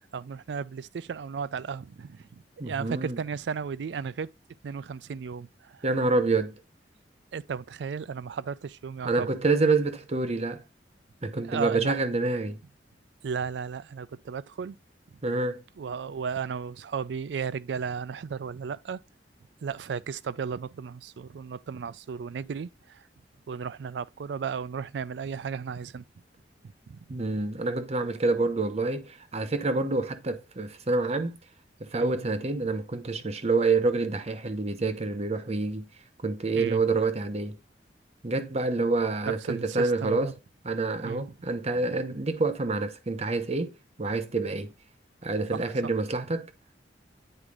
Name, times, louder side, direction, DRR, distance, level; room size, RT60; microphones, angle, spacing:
voice 1, 0.1-2.2 2.6-4.3 4.6-5.9 7.3-9.3 11.5-12.0 13.2-14.8 15.8-19.0 19.6-23.0 23.5-26.0 26.9-27.2 32.0-32.2 36.5-36.8 39.5-40.3 41.0-41.3 45.5-45.7, right 6 dB, 75° right, 0.4 m, -34 dB
voice 2, 2.6-3.2 5.8-6.5 9.0-10.6 11.2-12.6 15.2-15.6 27.1-31.4 31.8-35.9 36.2-37.6 38.2-40.3 40.6-43.7 44.0-44.7 45.2-46.5, right 3 dB, 35° right, 0.8 m, -27 dB
8.9 x 4.9 x 2.4 m
head